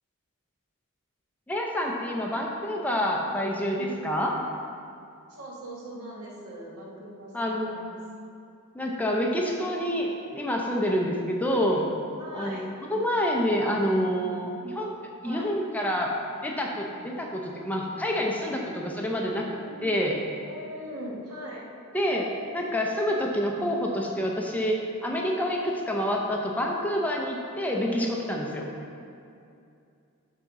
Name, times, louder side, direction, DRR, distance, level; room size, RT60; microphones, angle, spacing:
voice 1, 1.5-4.3 7.3-7.8 8.7-11.8 12.3-14.9 15.2-16.1 16.4-19.5 19.8-20.2 21.9-28.7, equal, 5° left, -1 dB, 0.5 m, -27 dB
voice 2, 5.3-8.0 11.7-11.9 12.2-12.7 15.2-15.5 19.4-20.0 20.5-21.7, equal, 85° right, -2 dB, 1.2 m, -41 dB
6.8 x 3.6 x 5.9 m, 2.5 s
head